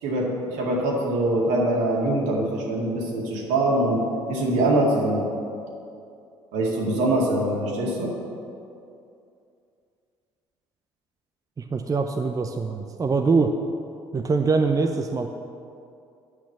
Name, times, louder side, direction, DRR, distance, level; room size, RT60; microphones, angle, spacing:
voice 1, 0.0-4.0 4.3-5.3 6.5-8.1, right 1 dB, 65° right, -2 dB, 2.0 m, -23 dB
voice 2, 11.6-13.5 14.1-15.3, right 4 dB, 25° right, 5 dB, 0.6 m, -23 dB
8.4 x 5.9 x 7.3 m, 2.6 s
figure-of-eight pair, 55°, 14 cm